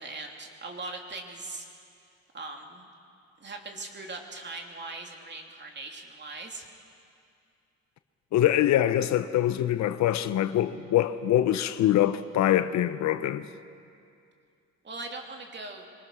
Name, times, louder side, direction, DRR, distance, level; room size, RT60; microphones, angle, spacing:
voice 1, 0.0-1.7 2.3-2.9 3.4-6.7 14.8-15.9, right 3 dB, 40° right, 2.9 m, -40 dB
voice 2, 8.3-13.5, left 12 dB, 70° left, 0.8 m, -24 dB
24.0 x 19.5 x 6.2 m
supercardioid pair, 70°, 29 cm